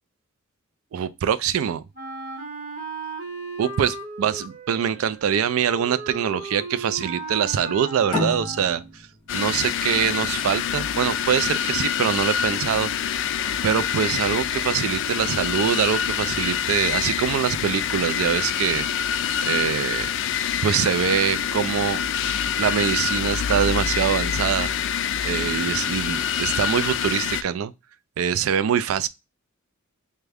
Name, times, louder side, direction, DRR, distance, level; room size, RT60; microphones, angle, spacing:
voice 1, 0.9-1.8 3.6-9.0 9.3-12.9 13.6-18.9 19.4-20.1 20.6-22.0 22.6-24.7 25.2-27.7 28.2-29.1, right 8 dB, 70° right, 0.3 m, -24 dB
Wind instrument woodwind instrument, 1.9-8.9, right 3 dB, 45° right, 1.2 m, -36 dB
sound 1, 8.1-11.3, left 2 dB, 25° left, 1.3 m, -31 dB
sound 2, 9.3-27.4, left 8 dB, 60° left, 0.3 m, -26 dB
3.5 x 2.2 x 3.3 m
head